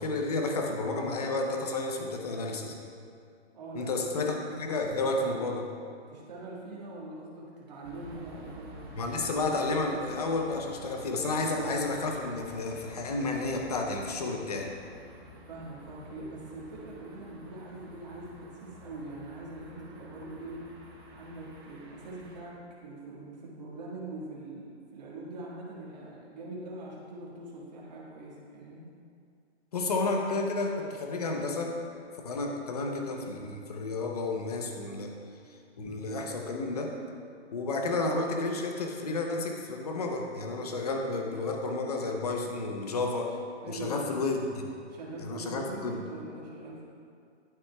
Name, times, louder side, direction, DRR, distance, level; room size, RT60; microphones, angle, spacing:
voice 1, 0.0-2.8 3.7-5.6 9.0-14.7 29.7-31.8 32.2-35.1 35.8-37.0 37.5-43.4 43.7-44.7 45.2-45.9, left 3 dB, 35° left, 2 dB, 0.7 m, -31 dB
voice 2, 3.5-4.2 4.7-5.1 6.1-8.8 15.5-20.7 21.1-28.8 43.6-44.1 44.9-46.8, right 2 dB, 35° right, -5 dB, 1.7 m, -43 dB
sound 1, 7.8-22.4, right 1 dB, 20° right, 0.7 m, -49 dB
11.5 x 6.2 x 2.3 m, 2.3 s
hypercardioid pair, 170°, 34 cm